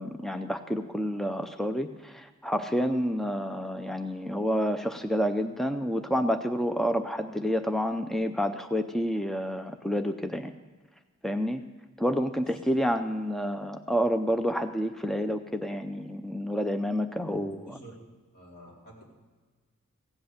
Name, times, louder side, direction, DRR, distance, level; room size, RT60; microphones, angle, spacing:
voice 1, 0.0-10.5 11.2-11.6 12.0-17.8, equal, ahead, 7 dB, 0.4 m, -29 dB
voice 2, 17.3-17.9 18.3-19.0, right 1 dB, 45° left, -5 dB, 4.6 m, -49 dB
16.5 x 7.9 x 6.9 m, 1.4 s
head